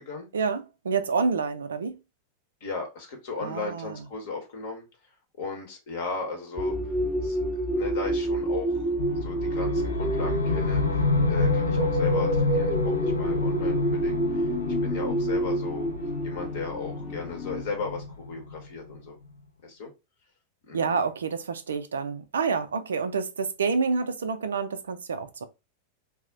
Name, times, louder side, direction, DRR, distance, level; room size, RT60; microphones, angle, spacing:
voice 1, 0.3-2.0 3.4-4.0 20.7-25.5, right 5 dB, 70° right, 0.4 m, -28 dB
voice 2, 2.6-4.8 5.4-6.9 7.2-7.4 7.7-8.9 9.2-14.5 14.8-15.9 16.2-19.2 19.6-19.9 20.7-21.1, left 4 dB, 55° left, 0.8 m, -36 dB
sound 1, 6.6-17.6, right 1 dB, 10° left, 0.7 m, -28 dB
sound 2, 9.0-19.1, left 3 dB, 75° left, 0.4 m, -29 dB
2.3 x 2.0 x 3.8 m
figure-of-eight pair, 90°, 0 cm